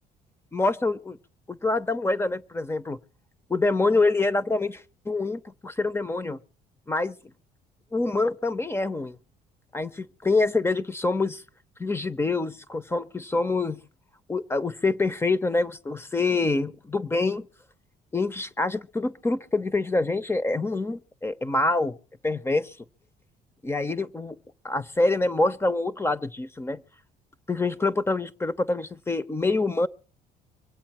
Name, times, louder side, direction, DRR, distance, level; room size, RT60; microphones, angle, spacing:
voice 1, 0.5-1.2 1.5-3.0 3.5-6.4 6.9-7.2 7.9-9.2 9.7-11.4 11.8-13.8 14.3-17.5 18.1-22.0 22.2-22.7 23.6-24.4 24.6-26.8 27.5-29.9, left 3 dB, 15° left, 0.8 m, -26 dB
24.5 x 8.3 x 4.4 m
cardioid pair, 110°, 17 cm